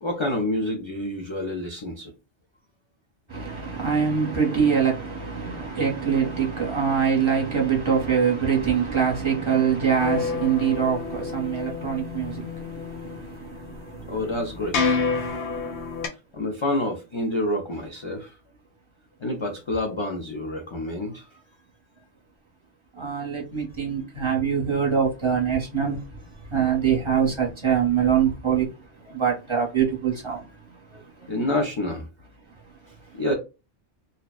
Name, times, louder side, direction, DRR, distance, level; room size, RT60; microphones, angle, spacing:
voice 1, 0.0-2.1 14.1-15.0 16.3-18.4 19.2-21.4 30.9-32.1 33.1-33.3, left 1 dB, 55° left, 0.3 m, -28 dB
voice 2, 3.3-14.3 15.0-15.7 23.0-31.3 33.1-33.2, right 7 dB, 30° right, 0.8 m, -24 dB
sound 1, 10.0-16.1, left 5 dB, 90° left, 0.9 m, -29 dB
2.6 x 2.1 x 2.3 m
omnidirectional pair, 1.1 m